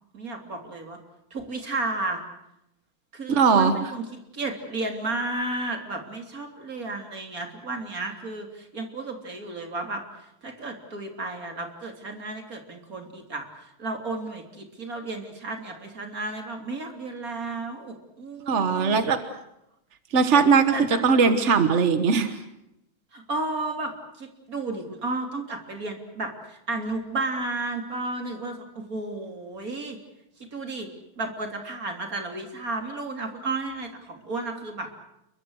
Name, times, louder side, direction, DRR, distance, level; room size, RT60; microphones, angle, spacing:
voice 1, 0.1-1.0 1.3-2.2 3.1-4.0 4.3-10.0 10.4-13.5 13.8-19.0 20.7-21.0 23.1-30.0 30.5-30.9 31.2-34.9, right 2 dB, 30° right, 4 dB, 3.4 m, -33 dB
voice 2, 3.3-3.7 18.5-19.2 20.1-22.4, right 5 dB, 45° right, 9 dB, 0.9 m, -20 dB
29.0 x 23.0 x 6.5 m, 0.83 s
omnidirectional pair, 3.4 m